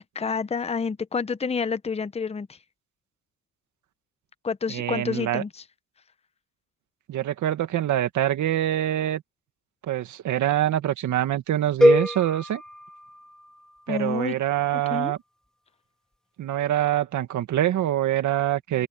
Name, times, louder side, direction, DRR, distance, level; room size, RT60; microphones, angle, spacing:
voice 1, 0.0-2.6 4.4-5.6 13.9-14.4 14.9-15.1, left 5 dB, 20° left, 0.8 m, -29 dB
voice 2, 4.7-5.4 7.1-9.2 9.9-12.6 13.9-15.2 16.4-18.9, right 12 dB, 75° right, 2.1 m, -25 dB
sound 1, 11.8-13.9, equal, ahead, 2.6 m, -23 dB
cardioid pair, 90°, 30 cm